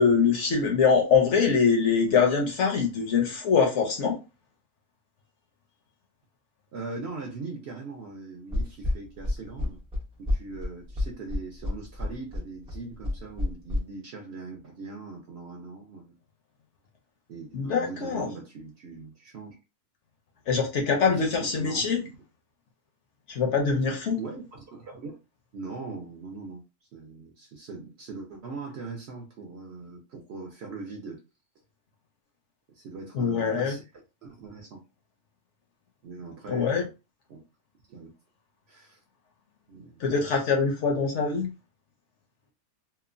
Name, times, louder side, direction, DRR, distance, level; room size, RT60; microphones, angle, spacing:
voice 1, 0.0-4.2 17.5-18.3 20.5-22.0 23.3-24.2 33.1-33.8 36.5-36.8 40.0-41.5, left 5 dB, 65° left, 0.8 m, -23 dB
voice 2, 6.7-9.8 10.2-16.2 17.3-19.6 21.1-22.1 24.1-25.2 25.5-26.6 26.9-31.2 32.7-33.8 34.2-34.8 36.0-36.9 37.3-37.4 37.9-38.1 38.7-39.0 39.7-40.0, right 3 dB, 60° right, 0.7 m, -40 dB
sound 1, 8.5-13.8, left 1 dB, 10° right, 0.3 m, -29 dB
3.0 x 2.0 x 2.4 m
omnidirectional pair, 1.5 m